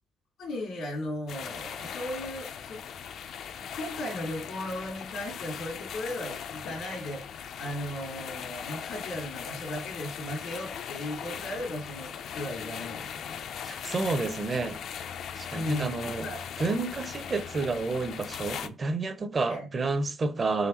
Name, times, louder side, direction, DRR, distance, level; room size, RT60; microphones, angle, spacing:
voice 1, 0.4-2.8 3.6-7.3 7.6-13.4 15.5-16.4 16.7-16.8 19.5-19.7, left 1 dB, 85° left, 1.8 m, -36 dB
sound 1, 1.3-18.7, left 8 dB, 70° left, 0.4 m, -39 dB
voice 2, 13.6-14.8 15.4-16.3 16.6-20.7, right 3 dB, 35° right, 0.5 m, -30 dB
3.9 x 3.5 x 2.9 m
cardioid pair, 90°, 0 cm